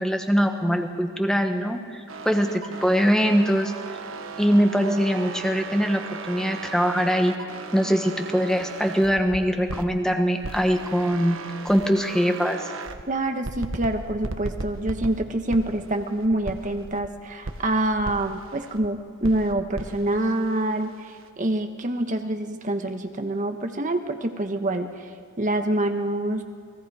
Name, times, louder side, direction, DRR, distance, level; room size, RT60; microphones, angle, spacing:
voice 1, 0.0-3.7 4.4-7.3 7.7-11.4 11.6-12.6, equal, 5° left, 4 dB, 1.3 m, -22 dB
sound 1, 2.1-9.9 10.4-13.0 13.4-17.1 17.4-18.9 19.2-21.3, right 3 dB, 75° right, 1.2 m, -37 dB
voice 2, 13.1-26.4, right 1 dB, 40° right, 6 dB, 1.2 m, -26 dB
29.5 x 20.5 x 4.9 m, 2.3 s
head